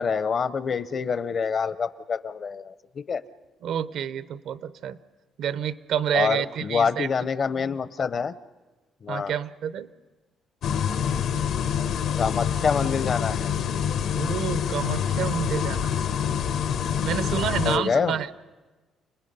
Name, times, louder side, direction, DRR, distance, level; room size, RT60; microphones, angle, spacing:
voice 1, 0.0-3.2 6.1-8.3 9.0-9.3 12.2-13.5 17.6-18.2, left 6 dB, 40° left, 14 dB, 0.6 m, -26 dB
voice 2, 3.6-5.0 5.4-7.1 9.1-9.9 14.1-16.0 17.0-18.3, right 9 dB, 70° right, 14 dB, 0.7 m, -29 dB
sound 1, 10.6-17.8, left 8 dB, 70° left, 0.9 m, -26 dB
29.5 x 19.5 x 5.5 m, 1.2 s
cardioid pair, 145°, 0 cm